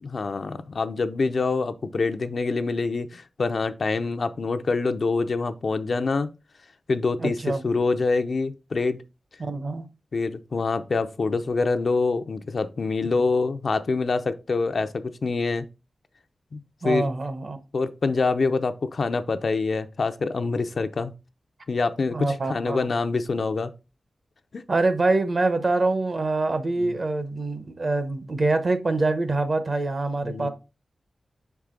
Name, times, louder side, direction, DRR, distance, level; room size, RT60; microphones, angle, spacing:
voice 1, 0.0-6.3 6.9-9.0 10.1-15.7 16.5-16.6 16.8-17.1 17.7-21.1 21.7-23.7 24.5-24.6 26.8-26.9 30.2-30.5, left 4 dB, 55° left, 0.5 m, -25 dB
voice 2, 7.2-7.6 9.4-9.9 16.8-17.6 22.1-22.8 24.7-30.5, right 2 dB, 40° right, 0.8 m, -25 dB
6.3 x 4.7 x 3.7 m
wide cardioid pair, 140°, 0 cm